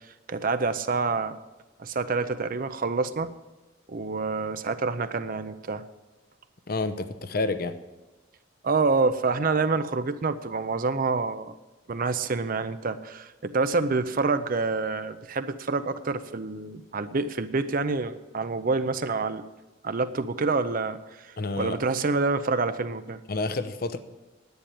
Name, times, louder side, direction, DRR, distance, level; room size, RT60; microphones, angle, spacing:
voice 1, 0.3-1.3 1.8-3.3 3.9-5.8 8.6-11.5 11.9-19.4 19.8-23.2, right 4 dB, 45° right, 10 dB, 0.6 m, -27 dB
voice 2, 6.7-7.7 21.4-21.8 23.3-24.0, left 3 dB, 50° left, 11 dB, 0.8 m, -29 dB
10.5 x 8.9 x 8.4 m, 1.1 s
head